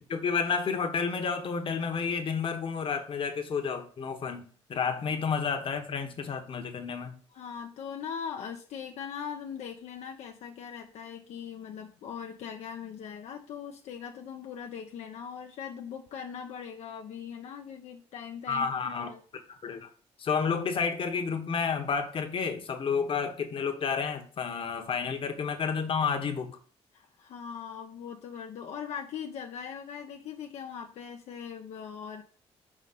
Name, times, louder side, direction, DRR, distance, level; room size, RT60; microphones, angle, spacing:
voice 1, 0.1-7.2 18.5-19.1 19.6-19.9 20.2-26.6, left 5 dB, 50° left, 1.2 m, -30 dB
voice 2, 7.3-19.2 26.9-32.2, left 7 dB, 80° left, 0.7 m, -40 dB
5.3 x 5.0 x 4.1 m
cardioid pair, 95°, 11 cm